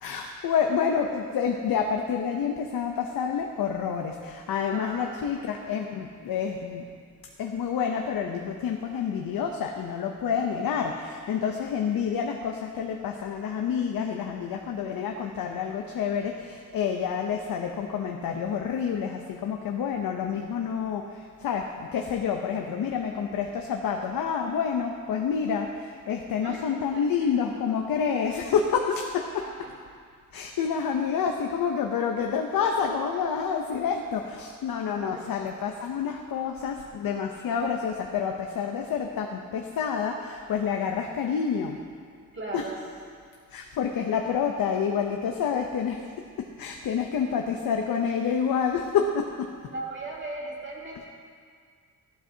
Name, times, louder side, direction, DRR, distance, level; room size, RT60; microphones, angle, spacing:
voice 1, 0.0-6.9 7.4-29.5 30.3-41.8 42.5-42.7 43.5-46.1 46.4-49.5 50.9-51.0, left 7 dB, 90° left, 2 dB, 0.7 m, -28 dB
voice 2, 4.7-5.3 26.4-26.6 27.2-27.3 29.4-29.7 30.7-30.8 34.9-35.3 42.3-42.8 49.7-51.0, right 2 dB, 35° right, -4 dB, 2.3 m, -38 dB
14.0 x 12.0 x 2.8 m, 2.1 s
wide cardioid pair, 130°, 34 cm